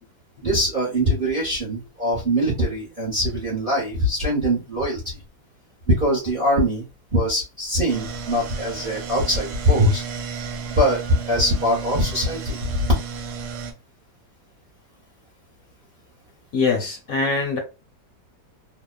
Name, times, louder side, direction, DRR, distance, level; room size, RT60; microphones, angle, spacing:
voice 1, 0.4-5.2 5.9-6.8 7.1-10.0 10.8-11.0 11.2-12.9, equal, 40° right, 0.8 m, -22 dB
sound 1, 7.9-13.7, right 5 dB, 75° right, 1.1 m, -33 dB
voice 2, 16.5-17.6, left 4 dB, 65° left, 1.1 m, -23 dB
2.9 x 2.1 x 2.3 m
omnidirectional pair, 1.8 m